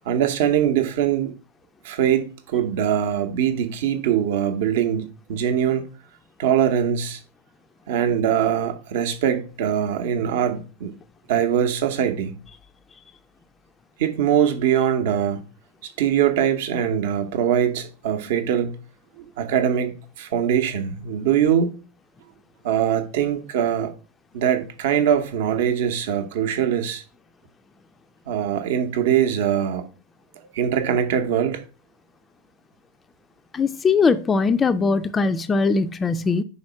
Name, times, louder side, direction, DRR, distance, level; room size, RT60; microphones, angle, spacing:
voice 1, 0.1-1.3 1.8-5.9 6.4-7.2 7.9-10.9 11.3-12.4 14.0-15.4 15.8-18.8 19.2-21.8 22.6-23.9 24.3-27.0 28.3-29.9 30.5-31.6, right 9 dB, 55° right, 0.7 m, -22 dB
voice 2, 33.5-36.4, left 4 dB, 20° left, 0.3 m, -20 dB
5.2 x 4.1 x 5.7 m
figure-of-eight pair, 90°, 0 cm